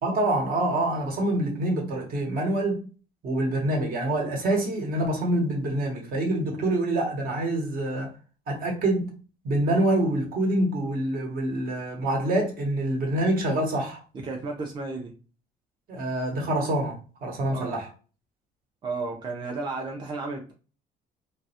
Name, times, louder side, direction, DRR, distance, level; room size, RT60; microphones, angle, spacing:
voice 1, 0.0-2.9 3.2-8.1 8.5-9.1 9.4-14.0 15.9-17.9, right 1 dB, 60° right, 0.9 m, -26 dB
voice 2, 14.1-15.1 17.4-17.8 18.8-20.5, right 3 dB, 30° right, 0.5 m, -33 dB
2.2 x 2.0 x 2.7 m
cardioid pair, 110°, 17 cm